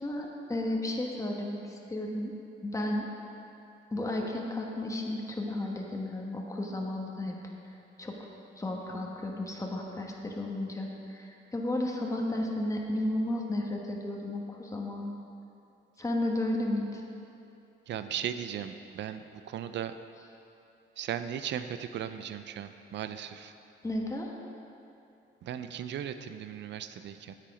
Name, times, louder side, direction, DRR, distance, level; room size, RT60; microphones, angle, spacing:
voice 1, 0.0-2.3 2.6-3.1 3.9-7.3 8.0-8.2 8.6-15.1 16.0-17.0 23.8-24.3, left 1 dB, 15° left, 0 dB, 1.2 m, -33 dB
voice 2, 17.9-20.0 21.0-23.5 25.4-27.3, right 9 dB, 65° right, 11 dB, 0.5 m, -37 dB
8.9 x 7.6 x 5.1 m, 2.8 s
cardioid pair, 90°, 20 cm